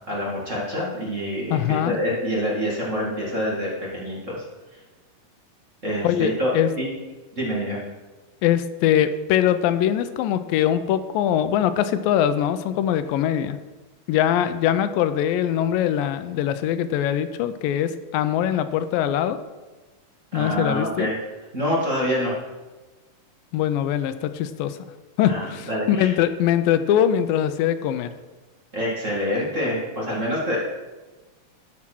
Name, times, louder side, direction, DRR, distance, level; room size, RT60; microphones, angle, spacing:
voice 1, 0.0-4.4 5.8-6.9 7.4-7.8 20.3-21.2 21.5-22.3 25.3-26.1 28.7-30.6, equal, 25° right, -5 dB, 2.0 m, -26 dB
voice 2, 1.5-2.0 6.0-6.7 8.4-13.6 14.1-19.4 20.3-21.1 23.5-24.8 25.2-28.1, left 10 dB, 90° left, 11 dB, 2.4 m, -22 dB
12.5 x 5.8 x 6.1 m, 1.2 s
omnidirectional pair, 4.0 m